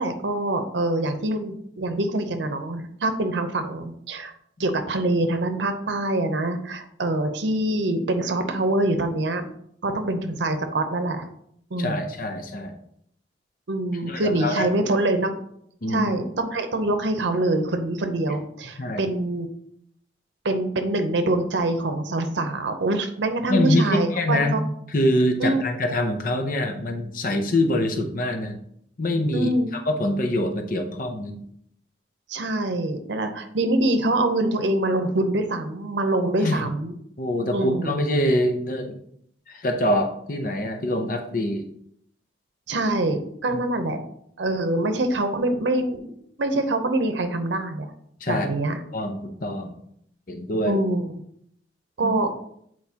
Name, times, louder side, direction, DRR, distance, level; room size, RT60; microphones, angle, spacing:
voice 1, 0.0-4.3 4.6-9.5 9.8-11.3 11.7-12.1 13.7-15.3 15.9-19.5 20.4-24.6 25.4-25.6 29.3-29.7 32.3-36.9 37.5-37.9 42.7-44.0 44.4-46.0 46.4-47.9 48.3-48.8 50.6-51.2 52.0-52.3, right 2 dB, 85° right, 7 dB, 0.7 m, -24 dB
voice 2, 11.8-12.8 14.0-14.7 15.8-16.1 18.8-19.1 23.5-24.6 24.9-28.6 29.0-31.4 36.4-36.6 37.2-39.0 39.5-41.7 48.2-48.5 48.9-49.7 50.3-50.8 52.0-52.1, left 1 dB, 50° left, 6 dB, 0.7 m, -25 dB
8.2 x 4.5 x 2.8 m, 0.70 s
head